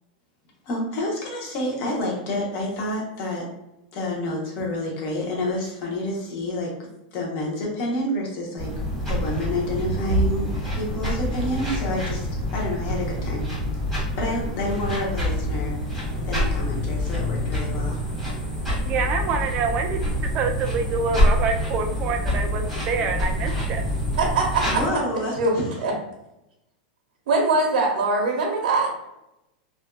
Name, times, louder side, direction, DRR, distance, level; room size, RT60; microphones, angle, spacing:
voice 1, 0.7-3.5 3.9-6.9 7.1-8.7 9.1-12.3 12.5-13.5 14.0-15.7 16.3-18.0 24.6-25.8, left 1 dB, 40° left, -2 dB, 0.9 m, -28 dB
sound 1, 8.6-24.9, equal, 5° left, 1.3 m, -26 dB
voice 2, 18.8-23.8, right 4 dB, 30° right, 5 dB, 0.3 m, -26 dB
voice 3, 24.2-24.8 25.4-25.5 25.8-25.9 27.3-28.9, right 3 dB, 80° right, 0 dB, 0.7 m, -22 dB
2.6 x 2.3 x 2.2 m, 0.88 s
supercardioid pair, 145°, 5 cm